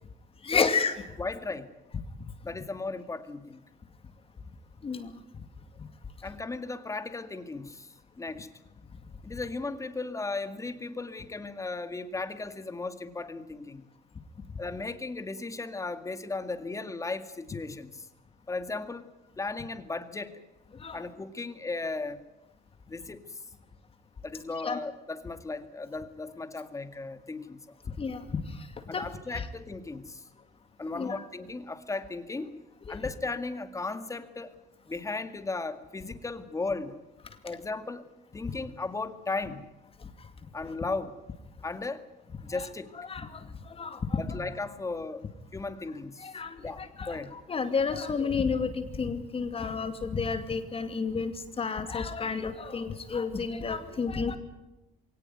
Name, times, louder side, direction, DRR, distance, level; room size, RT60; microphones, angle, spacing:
voice 1, 0.4-0.9 4.8-5.2 20.7-21.0 24.6-24.8 28.0-29.1 30.9-31.2 32.9-33.0 40.0-40.3 42.5-42.6 43.1-44.2 46.2-54.4, left 5 dB, 35° left, 8 dB, 2.4 m, -31 dB
voice 2, 1.2-1.7 2.4-3.6 6.2-8.5 9.2-13.9 14.6-18.1 18.5-19.1 19.4-20.4 20.9-22.2 22.9-23.4 24.2-27.8 28.9-30.3 30.8-32.5 32.9-34.5 34.9-37.0 37.4-38.1 38.3-39.6 40.5-41.1 41.6-42.0 42.4-42.9 44.2-46.3 46.6-47.3, left 3 dB, 20° left, 10 dB, 2.2 m, -36 dB
22.5 x 18.0 x 9.5 m, 1.0 s
cardioid pair, 110°, 17 cm